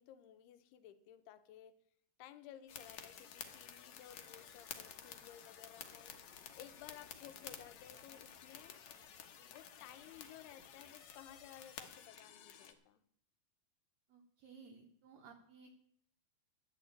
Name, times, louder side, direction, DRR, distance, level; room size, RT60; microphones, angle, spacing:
voice 1, 0.0-1.8 2.2-6.1 6.6-8.8 9.5-13.0, left 11 dB, 90° left, 10 dB, 2.8 m, -56 dB
sound 1, 2.7-12.7, left 8 dB, 70° left, 1.8 m, -53 dB
voice 2, 14.1-15.7, right 5 dB, 85° right, 3 dB, 1.5 m, -58 dB
11.0 x 7.8 x 8.5 m, 0.67 s
omnidirectional pair, 4.5 m